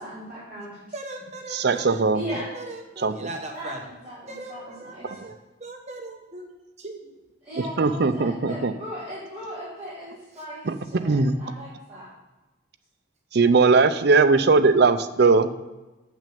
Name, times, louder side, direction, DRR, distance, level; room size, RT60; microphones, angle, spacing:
voice 1, 0.0-0.8 2.1-2.5 3.5-5.2 7.4-12.1, equal, 10° right, -13 dB, 3.1 m, -37 dB
voice 2, 0.9-3.8 4.3-6.5 6.8-7.1, right 2 dB, 35° right, 3 dB, 1.0 m, -39 dB
voice 3, 1.5-2.2 3.0-3.1 7.8-8.7 10.7-10.8 11.0-11.3 13.3-15.5, right 4 dB, 55° right, 10 dB, 0.5 m, -19 dB
7.6 x 6.2 x 6.9 m, 1.1 s
head